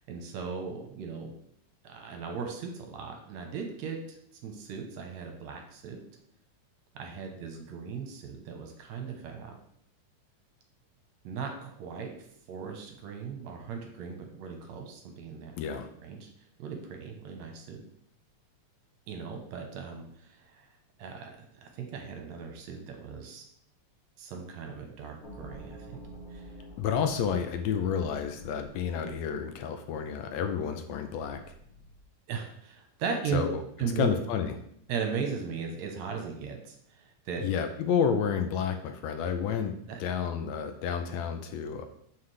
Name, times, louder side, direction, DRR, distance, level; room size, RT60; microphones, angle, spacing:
voice 1, 0.0-1.3 1.8-4.2 4.4-6.0 7.0-9.6 11.2-12.1 12.5-15.5 16.0-16.3 16.6-17.8 19.1-20.7 21.0-23.4 24.2-26.0 26.3-26.5 32.3-33.4 33.8-34.1 34.9-37.4 39.9-40.0, right 6 dB, 75° right, 3 dB, 2.2 m, -37 dB
voice 2, 15.6-15.9 26.8-31.4 33.3-33.6 34.0-34.5 37.4-39.7 40.0-41.9, left 7 dB, 75° left, 6 dB, 1.8 m, -30 dB
sound 1, 25.2-32.1, right 1 dB, 40° left, 3.0 m, -49 dB
7.3 x 5.7 x 3.3 m, 0.69 s
omnidirectional pair, 3.3 m